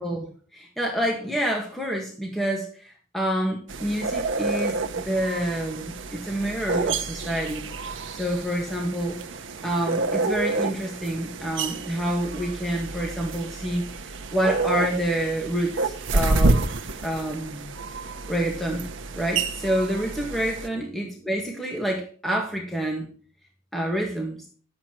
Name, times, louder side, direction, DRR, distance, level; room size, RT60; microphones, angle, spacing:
voice 1, 0.0-7.7 8.1-9.2 9.6-13.8 14.3-16.7 17.0-17.7 18.3-18.8 19.2-23.1 23.7-24.4, right 1 dB, ahead, -1 dB, 1.6 m, -28 dB
sound 1, 3.7-20.7, right 3 dB, 75° right, 0.9 m, -29 dB
12.0 x 7.7 x 4.5 m, 0.42 s
head